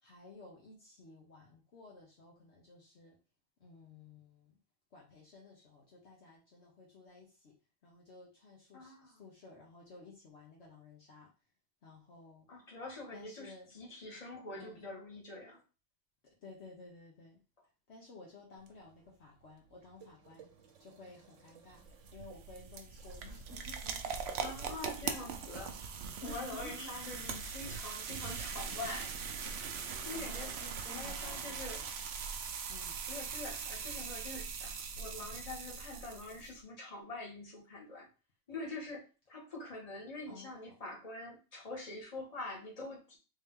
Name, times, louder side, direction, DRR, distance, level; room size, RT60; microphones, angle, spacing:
voice 1, 0.0-3.2 3.6-4.6 4.9-7.5 7.8-11.3 11.8-12.5 13.1-13.7 14.5-14.8 16.4-17.4 17.9-20.5 20.8-21.8 22.1-24.4 25.0-25.2 26.2-27.2 30.1-31.9 32.7-33.0 40.3-40.8, left 3 dB, 60° left, -3 dB, 1.2 m, -54 dB
voice 2, 8.7-9.2 12.5-15.6 24.3-25.8 26.2-29.1 30.0-30.6 30.8-31.8 33.1-38.1 38.5-43.2, left 2 dB, 30° left, -3 dB, 1.4 m, -45 dB
sound 1, 18.6-24.7, right 5 dB, 85° right, 1.1 m, -59 dB
sound 2, 21.7-36.5, right 6 dB, 65° right, 0.8 m, -41 dB
3.5 x 2.8 x 3.6 m, 0.32 s
omnidirectional pair, 1.3 m